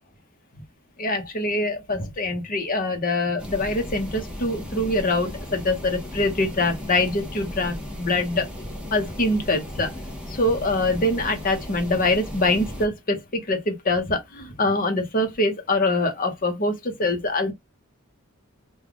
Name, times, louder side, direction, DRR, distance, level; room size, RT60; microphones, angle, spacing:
voice 1, 1.0-8.5 8.9-9.9 10.3-17.5, left 2 dB, 40° left, 0.8 m, -24 dB
sound 1, 3.4-12.9, left 1 dB, 5° right, 1.0 m, -36 dB
3.3 x 2.3 x 3.5 m
head